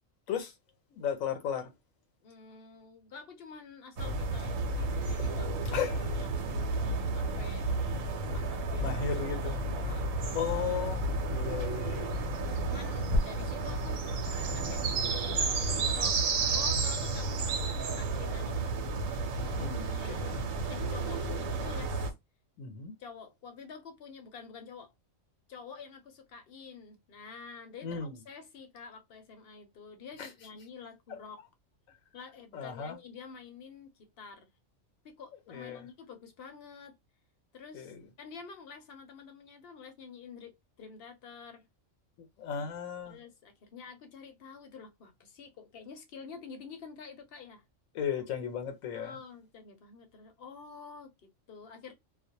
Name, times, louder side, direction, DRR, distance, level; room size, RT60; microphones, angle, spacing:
voice 1, 0.9-1.7 5.7-6.1 8.8-9.6 10.3-11.0 11.3-12.2 19.6-20.4 22.6-22.9 27.8-28.2 30.2-30.3 31.1-31.2 32.5-33.0 35.5-35.8 37.7-38.0 42.4-43.2 47.9-49.2, left 7 dB, 85° left, 1.1 m, -35 dB
voice 2, 2.2-6.7 7.1-7.7 8.3-10.3 12.6-14.1 14.5-16.2 16.5-18.7 19.4-22.1 23.0-24.9 25.5-31.4 32.1-34.5 35.0-36.9 37.5-41.7 42.5-42.7 43.0-47.6 48.9-51.9, left 5 dB, 55° left, 0.7 m, -48 dB
sound 1, 4.0-22.1, right 3 dB, 80° right, 1.1 m, -31 dB
2.4 x 2.0 x 2.7 m
omnidirectional pair, 1.4 m